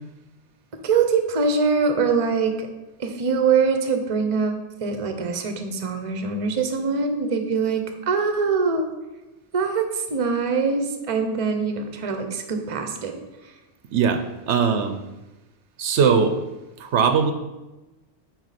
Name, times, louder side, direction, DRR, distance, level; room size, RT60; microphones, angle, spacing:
voice 1, 0.7-2.7 3.0-8.9 9.5-13.2, right 5 dB, 35° right, 6 dB, 0.7 m, -23 dB
voice 2, 13.9-15.0 15.8-16.4 16.8-17.3, right 6 dB, 75° right, 8 dB, 0.9 m, -20 dB
9.3 x 4.0 x 4.1 m, 1.1 s
omnidirectional pair, 1.2 m